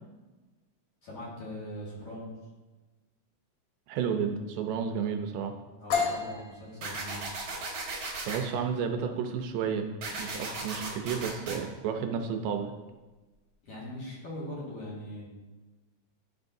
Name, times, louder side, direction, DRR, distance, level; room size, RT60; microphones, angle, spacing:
voice 1, 1.0-2.3 5.7-7.2 13.6-15.3, equal, 50° left, -6 dB, 2.5 m, -41 dB
voice 2, 3.9-5.5 8.3-9.9 10.2-12.7, right 7 dB, 80° right, 5 dB, 2.2 m, -31 dB
sound 1, 5.9-13.5, left 5 dB, 85° left, 1.2 m, -37 dB
sound 2, 6.8-8.4 10.0-11.6, right 3 dB, 55° right, 2.1 m, -36 dB
10.5 x 5.5 x 2.6 m, 1.2 s
omnidirectional pair, 3.9 m